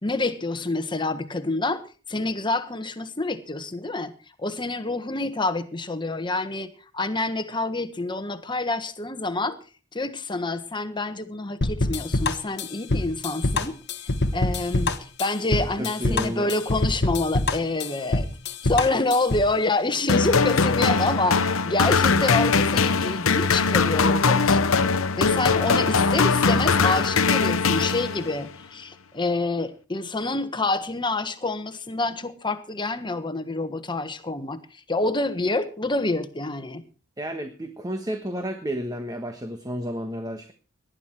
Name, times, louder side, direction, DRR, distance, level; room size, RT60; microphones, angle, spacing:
voice 1, 0.0-1.8 2.1-4.1 4.4-9.6 9.9-13.8 14.3-24.6 25.2-36.8, left 2 dB, 20° left, 1.4 m, -27 dB
sound 1, 11.6-19.5, left 2 dB, 55° left, 1.2 m, -25 dB
voice 2, 15.6-16.5 37.2-40.5, equal, 20° right, 1.3 m, -31 dB
sound 2, 20.1-28.5, left 4 dB, 75° left, 0.9 m, -21 dB
19.0 x 11.5 x 4.6 m
head